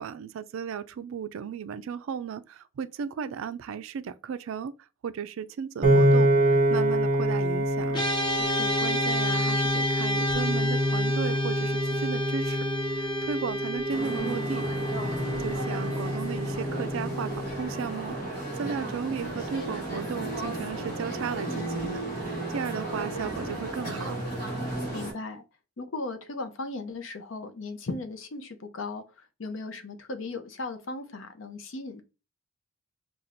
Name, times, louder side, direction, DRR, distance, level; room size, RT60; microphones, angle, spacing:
voice 1, 0.0-4.7 5.0-6.3 6.7-8.0 8.4-12.6 13.0-14.7 15.0-15.1 15.4-24.2, right 7 dB, 70° right, 0.3 m, -35 dB
Piano, 5.8-18.1, equal, 35° right, 0.7 m, -27 dB
sound 1, 7.9-19.4, equal, 20° left, 0.6 m, -32 dB
voice 2, 8.4-8.7 24.9-25.4 25.8-32.0, left 3 dB, 65° left, 0.6 m, -37 dB
sound 2, 13.9-25.1, right 2 dB, 40° left, 2.0 m, -34 dB
5.7 x 2.3 x 2.6 m
head